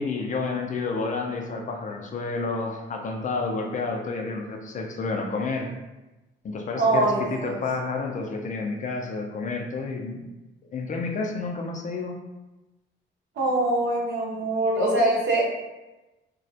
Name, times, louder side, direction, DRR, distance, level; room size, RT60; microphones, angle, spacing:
voice 1, 0.0-5.7 6.4-10.3 10.7-12.2, left 3 dB, 40° left, 2 dB, 0.4 m, -30 dB
voice 2, 6.8-7.6 13.4-15.4, right 2 dB, 70° right, -3 dB, 0.7 m, -23 dB
2.3 x 2.0 x 2.6 m, 1.1 s
cardioid pair, 90°, 20 cm